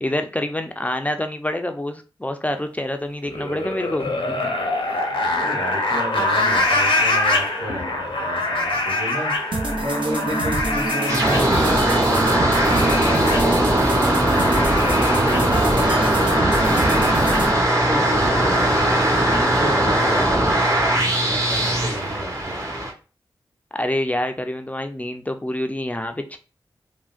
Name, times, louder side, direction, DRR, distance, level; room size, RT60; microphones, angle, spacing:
voice 1, 0.0-4.1 23.7-26.4, left 1 dB, 15° left, 6 dB, 0.4 m, -26 dB
sound 1, 3.2-20.2, left 2 dB, 85° left, 0.7 m, -26 dB
voice 2, 4.0-14.9 15.1-22.6, right 1 dB, 80° right, -3 dB, 1.2 m, -32 dB
sound 2, 9.5-17.5, right 2 dB, 65° right, 0.6 m, -25 dB
sound 3, 11.1-22.9, right 1 dB, 35° right, 1.0 m, -20 dB
3.6 x 2.1 x 2.3 m, 0.34 s
cardioid pair, 40°, 9 cm